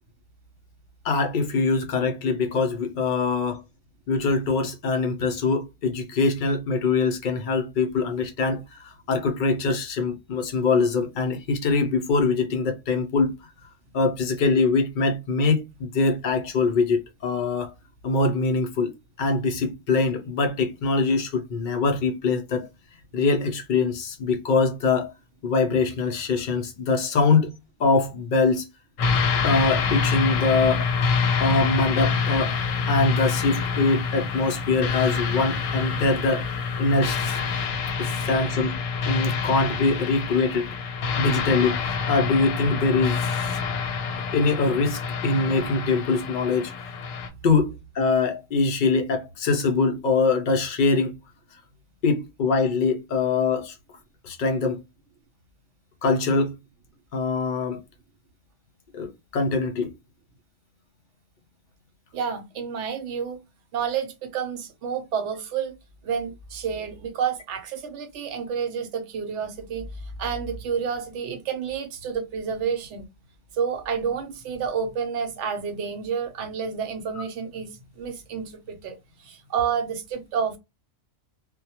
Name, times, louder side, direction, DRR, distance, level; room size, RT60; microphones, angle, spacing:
voice 1, 1.0-3.6 4.1-13.3 13.9-17.7 18.0-18.9 19.2-22.7 23.1-25.1 25.4-27.5 27.8-28.7 29.4-30.9 31.4-32.6 32.9-36.5 36.8-37.4 38.0-38.8 39.1-40.7 41.2-43.3 44.3-46.7 47.4-51.1 52.0-53.8 54.2-54.8 56.0-56.5 57.1-57.8 58.9-59.9, left 3 dB, 65° left, 0.5 m, -23 dB
sound 1, 29.0-47.3, left 5 dB, 85° left, 1.0 m, -27 dB
voice 2, 62.1-63.4 63.7-65.7 66.0-73.1 73.5-80.6, right 6 dB, 70° right, 0.9 m, -30 dB
2.1 x 2.1 x 2.8 m
omnidirectional pair, 1.3 m